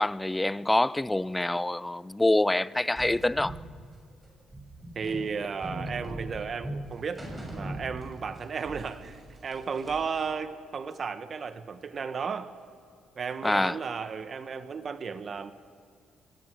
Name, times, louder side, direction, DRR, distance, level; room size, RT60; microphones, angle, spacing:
voice 1, 0.0-3.6 13.4-13.8, left 1 dB, 10° left, 0.4 m, -26 dB
sound 1, 3.0-8.4 8.6-10.2, right 1 dB, 10° right, 6.6 m, -39 dB
voice 2, 4.9-7.2 7.5-12.5 13.1-15.5, right 5 dB, 45° right, 1.2 m, -34 dB
26.0 x 19.0 x 6.3 m
cardioid pair, 90°, 0 cm